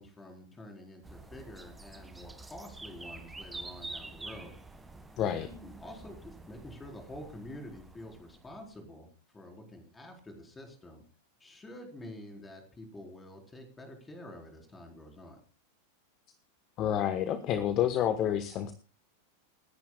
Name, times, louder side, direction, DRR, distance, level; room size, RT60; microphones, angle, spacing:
voice 1, 0.0-4.6 5.3-11.0 11.4-15.4, left 1 dB, 15° left, 2 dB, 4.3 m, -48 dB
sound 1, 1.0-8.7, right 3 dB, 10° right, 1.6 m, -47 dB
voice 2, 5.2-5.5 16.8-18.7, left 10 dB, 35° left, 10 dB, 1.1 m, -29 dB
28.5 x 10.5 x 2.3 m, 0.35 s
figure-of-eight pair, 90°, 0 cm